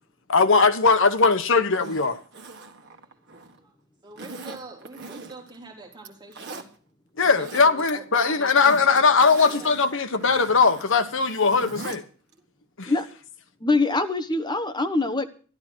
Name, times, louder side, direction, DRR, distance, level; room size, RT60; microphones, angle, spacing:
voice 1, 0.3-2.2 7.2-12.0 12.8-12.9, left 4 dB, 65° left, 1.2 m, -20 dB
Zipper (clothing), 1.6-3.6 4.2-5.6 5.9-6.7 7.2-7.9 8.2-12.0 12.3-12.4, right 3 dB, 55° right, 1.6 m, -41 dB
voice 2, 2.8-3.8 4.0-6.7 7.2-9.7 12.4-12.5, right 3 dB, 20° right, 3.4 m, -45 dB
voice 3, 13.6-15.3, left 3 dB, 20° left, 1.2 m, -23 dB
12.5 x 12.0 x 6.2 m
head